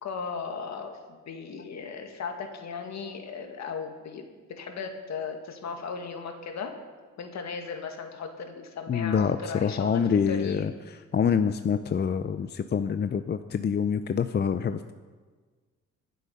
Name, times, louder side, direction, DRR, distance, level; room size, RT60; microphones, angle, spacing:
voice 1, 0.0-6.7 7.2-10.0 10.3-10.6, left 5 dB, 65° left, 4 dB, 2.2 m, -37 dB
voice 2, 8.9-14.9, left 7 dB, 35° left, 10 dB, 0.6 m, -26 dB
23.5 x 7.9 x 5.4 m, 1.4 s
cardioid pair, 90°, 30 cm